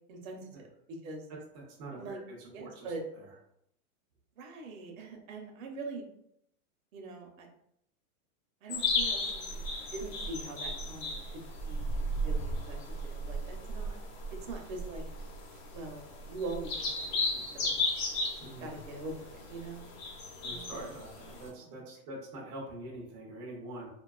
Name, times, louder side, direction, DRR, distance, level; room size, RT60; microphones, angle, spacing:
voice 1, 0.1-1.3 1.9-2.2 2.5-3.0 4.4-6.1 6.9-7.5 8.6-14.0 14.4-15.0 15.5-17.8 18.6-19.9 20.5-20.8 21.6-21.8, right 2 dB, 65° right, 2 dB, 0.7 m, -43 dB
voice 2, 1.8-2.9 18.4-18.8 20.4-23.9, right 1 dB, 30° right, -3 dB, 0.4 m, -44 dB
sound 1, 8.7-21.5, left 1 dB, 45° left, 0.7 m, -35 dB
2.6 x 2.3 x 2.3 m, 0.76 s
supercardioid pair, 155°, 43 cm